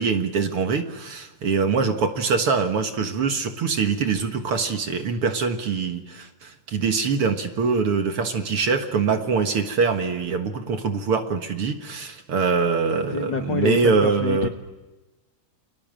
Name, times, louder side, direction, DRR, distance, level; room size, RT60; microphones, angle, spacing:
voice 1, 0.0-14.5, right 5 dB, 50° right, 7 dB, 2.0 m, -23 dB
voice 2, 13.1-14.5, left 6 dB, 60° left, 7 dB, 1.2 m, -26 dB
30.0 x 23.0 x 7.6 m, 1.1 s
omnidirectional pair, 3.7 m